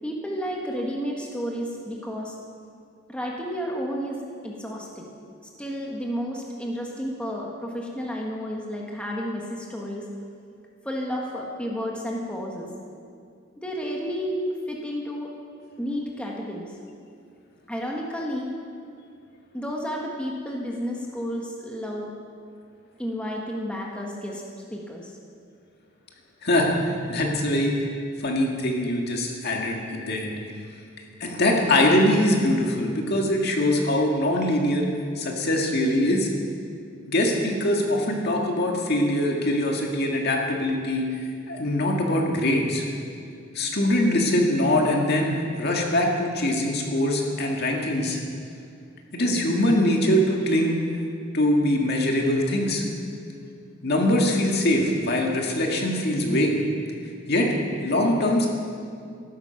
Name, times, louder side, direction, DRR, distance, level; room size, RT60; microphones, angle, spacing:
voice 1, 0.0-2.3 3.1-5.1 5.6-10.0 10.8-12.7 13.6-14.4 14.7-15.3 15.8-16.7 17.7-18.5 19.5-22.1 23.0-24.4 24.7-25.1, equal, 5° left, -2 dB, 1.5 m, -31 dB
voice 2, 26.4-27.8 28.2-30.3 31.2-34.9 35.2-36.3 37.1-42.8 43.5-45.3 45.6-48.2 49.1-50.8 51.3-52.8 53.8-56.6 57.3-57.5 57.8-58.5, left 1 dB, 55° left, 0 dB, 2.0 m, -23 dB
14.5 x 12.5 x 5.9 m, 2.4 s
head